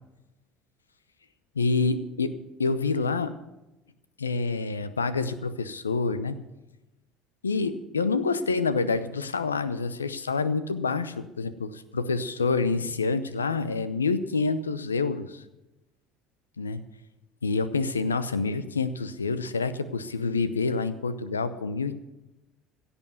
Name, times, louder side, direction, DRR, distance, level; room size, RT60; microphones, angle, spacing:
voice 1, 1.6-2.3 2.6-3.3 4.2-6.4 7.4-15.4 16.6-16.8 17.4-21.9, left 4 dB, 90° left, 14 dB, 0.7 m, -27 dB
16.5 x 7.1 x 9.2 m, 1.0 s
hypercardioid pair, 65°, 0 cm